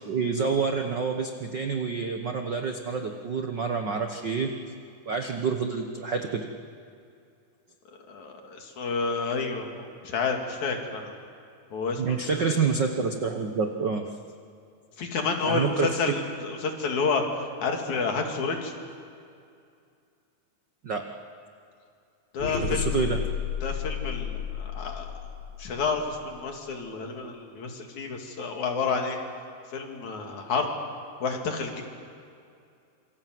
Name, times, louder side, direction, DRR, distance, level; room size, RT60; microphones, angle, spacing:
voice 1, 0.0-4.5 5.1-6.5 12.0-14.1 15.5-16.0 20.8-21.1 22.6-23.2, right 5 dB, 60° right, 4 dB, 1.1 m, -28 dB
voice 2, 8.1-11.2 11.7-12.6 15.0-17.2 17.6-18.7 22.3-23.0 23.6-25.1 25.6-29.2 29.7-30.7 31.2-31.8, left 4 dB, 65° left, 3 dB, 3.7 m, -30 dB
sound 1, 22.4-26.5, left 8 dB, 45° left, 4.2 m, -32 dB
27.0 x 24.0 x 7.8 m, 2.4 s
omnidirectional pair, 3.7 m